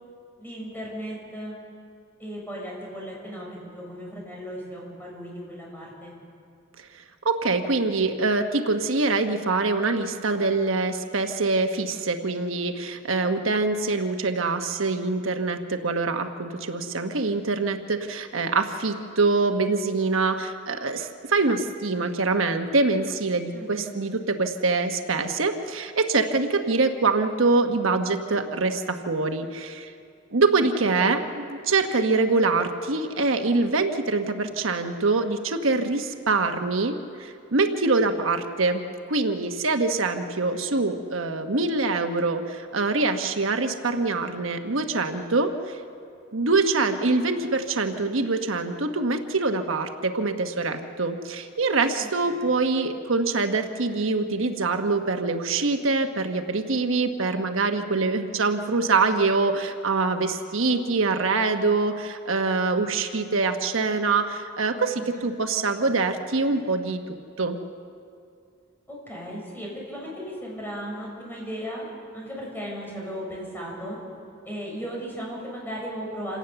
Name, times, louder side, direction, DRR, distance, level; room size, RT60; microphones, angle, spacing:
voice 1, 0.4-1.6 2.2-6.1 23.5-23.9 30.8-31.2 52.0-52.5 64.9-65.3 68.9-71.8 72.1-74.0 74.4-76.4, equal, 10° left, -3 dB, 6.6 m, -36 dB
voice 2, 7.2-29.9 30.3-45.8 46.3-67.0 67.4-67.6, right 3 dB, 85° right, 6 dB, 1.2 m, -24 dB
27.5 x 18.0 x 6.9 m, 2.4 s
head